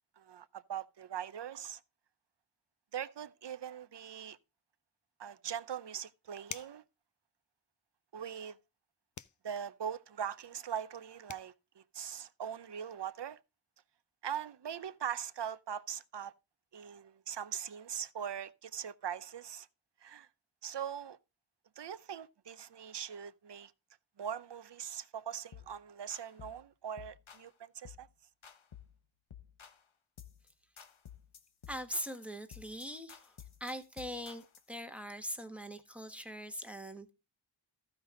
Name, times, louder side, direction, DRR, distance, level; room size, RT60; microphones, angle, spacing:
voice 1, 0.2-1.8 2.9-4.4 5.2-6.8 8.1-8.6 9.4-13.4 14.2-16.3 16.7-19.7 20.0-20.3 20.6-21.2 21.8-23.7 24.2-28.1, right 8 dB, 60° right, 0.7 m, -41 dB
sound 1, 6.5-6.9 9.1-9.4 10.9-11.0 11.3-11.5, left 7 dB, 40° left, 0.5 m, -45 dB
sound 2, 25.5-25.7 26.1-26.6 27.0-27.5 27.8-28.1 28.4-29.0 29.3-29.8 30.2-30.5 30.8-34.7, left 8 dB, 80° left, 1.1 m, -53 dB
voice 2, 31.7-37.1, equal, 5° right, 1.4 m, -42 dB
14.5 x 5.3 x 3.8 m
wide cardioid pair, 70°, 47 cm